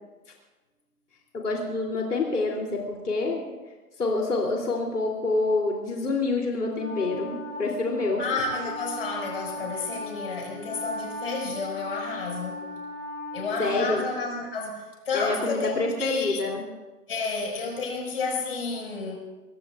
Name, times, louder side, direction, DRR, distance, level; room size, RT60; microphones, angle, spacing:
voice 1, 1.3-3.4 4.0-8.2 13.6-14.0 15.1-16.6, left 3 dB, 75° left, -1 dB, 3.3 m, -27 dB
Wind instrument woodwind instrument, 6.7-14.3, left 1 dB, 10° left, 5.5 m, -38 dB
voice 2, 8.2-12.6 13.3-16.4 17.1-19.2, left 4 dB, 40° left, -1 dB, 5.8 m, -31 dB
24.0 x 22.5 x 2.5 m, 1.2 s
hypercardioid pair, 170°, 47 cm